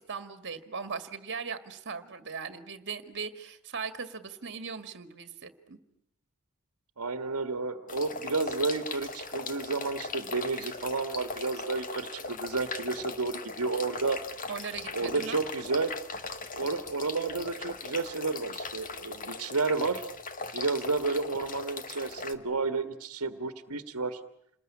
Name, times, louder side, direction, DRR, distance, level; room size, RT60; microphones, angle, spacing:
voice 1, 0.0-5.8 14.5-15.4, right 5 dB, 55° right, 10 dB, 2.0 m, -39 dB
voice 2, 7.0-14.2 14.9-15.9 16.5-20.1 20.5-24.2, right 3 dB, 80° right, 10 dB, 1.5 m, -31 dB
sound 1, 7.9-22.3, left 4 dB, 40° left, 1.7 m, -39 dB
28.5 x 20.5 x 9.9 m, 0.75 s
head